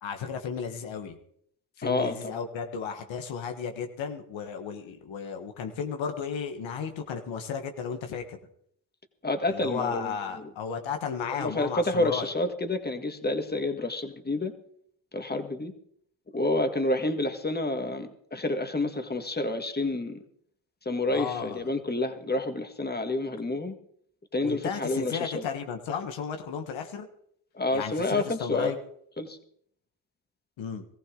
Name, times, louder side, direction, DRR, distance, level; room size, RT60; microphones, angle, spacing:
voice 1, 0.0-1.2 1.8-8.4 9.5-12.3 21.1-21.7 24.4-27.1 27.7-28.8 30.6-30.8, left 6 dB, 85° left, 6 dB, 1.5 m, -34 dB
voice 2, 1.8-2.4 9.2-10.5 11.4-14.5 15.1-15.7 16.3-20.2 20.9-23.8 24.3-25.5 27.5-28.7 29.2-29.4, left 2 dB, 20° left, 7 dB, 1.8 m, -29 dB
18.0 x 15.0 x 3.8 m, 0.66 s
cardioid pair, 65°, 45 cm